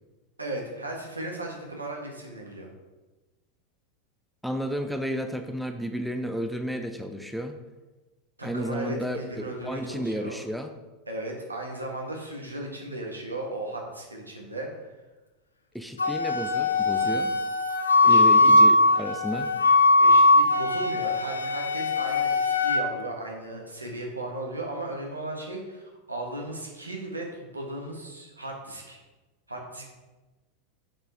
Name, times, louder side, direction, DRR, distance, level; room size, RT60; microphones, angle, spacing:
voice 1, 0.4-2.7 8.4-10.4 11.1-14.9 18.0-18.5 20.0-29.0 29.5-29.9, right 1 dB, 90° right, 0 dB, 1.3 m, -36 dB
voice 2, 4.4-7.6 8.4-10.7 15.7-17.4 18.1-19.5, equal, ahead, 7 dB, 0.5 m, -32 dB
Wind instrument woodwind instrument, 16.0-22.8, left 2 dB, 80° left, 0.6 m, -20 dB
7.7 x 4.5 x 3.5 m, 1.2 s
figure-of-eight pair, 85°, 0 cm